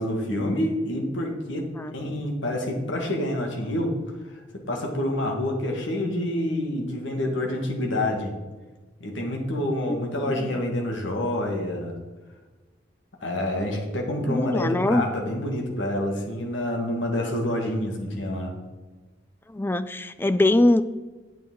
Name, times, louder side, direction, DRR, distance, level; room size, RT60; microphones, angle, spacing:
voice 1, 0.0-3.9 4.3-4.4 4.7-8.3 9.0-11.9 13.2-18.5, left 1 dB, 75° left, 1 dB, 1.9 m, -27 dB
voice 2, 14.3-15.0 19.5-20.8, left 1 dB, 10° left, 13 dB, 0.3 m, -22 dB
9.1 x 8.3 x 3.8 m, 1.2 s
head